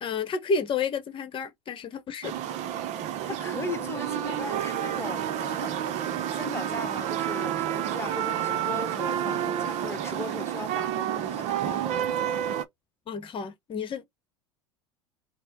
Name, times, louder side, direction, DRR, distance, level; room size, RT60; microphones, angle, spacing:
voice 1, 0.0-2.3 13.1-14.1, left 5 dB, 35° left, 1.0 m, -30 dB
sound 1, 2.2-12.6, right 10 dB, 50° right, 0.7 m, -30 dB
voice 2, 3.2-5.8 6.3-12.1, left 4 dB, 15° left, 1.1 m, -38 dB
4.2 x 2.1 x 4.0 m
hypercardioid pair, 85°, 15 cm